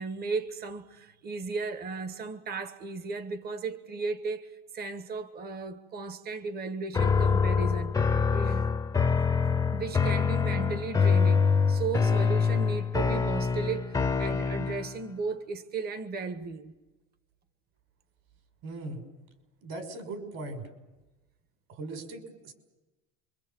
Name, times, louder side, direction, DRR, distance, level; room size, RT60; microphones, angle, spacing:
voice 1, 0.0-8.7 9.7-16.7, right 4 dB, 30° right, 1.6 m, -35 dB
sound 1, 6.9-15.0, left 5 dB, 10° left, 0.9 m, -25 dB
voice 2, 18.6-19.0 19.6-20.7 21.7-22.5, right 2 dB, 60° right, 6.3 m, -39 dB
28.5 x 24.0 x 7.3 m
cardioid pair, 140°, 30 cm